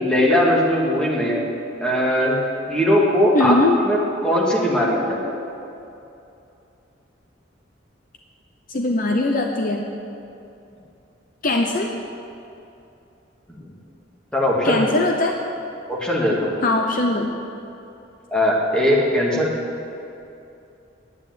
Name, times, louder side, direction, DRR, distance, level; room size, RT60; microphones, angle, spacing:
voice 1, 0.0-1.4 1.8-2.4 2.7-3.6 3.8-5.2 13.6-13.7 14.3-14.9 15.9-16.5 18.3-19.5, equal, 5° left, -4 dB, 2.1 m, -19 dB
voice 2, 3.3-3.8 8.7-9.8 11.4-11.9 14.6-15.3 16.6-17.3, left 2 dB, 45° left, 2 dB, 0.7 m, -20 dB
9.8 x 8.5 x 9.1 m, 2.7 s
head